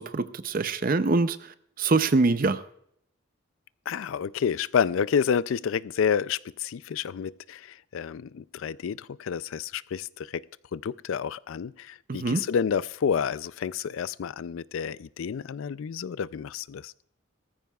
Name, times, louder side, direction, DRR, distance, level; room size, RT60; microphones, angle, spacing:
voice 1, 0.0-1.5 1.8-2.6 12.1-12.4, right 3 dB, 40° right, 0.5 m, -24 dB
voice 2, 3.9-10.4 10.7-16.9, left 7 dB, 70° left, 0.4 m, -29 dB
18.5 x 14.5 x 2.3 m
head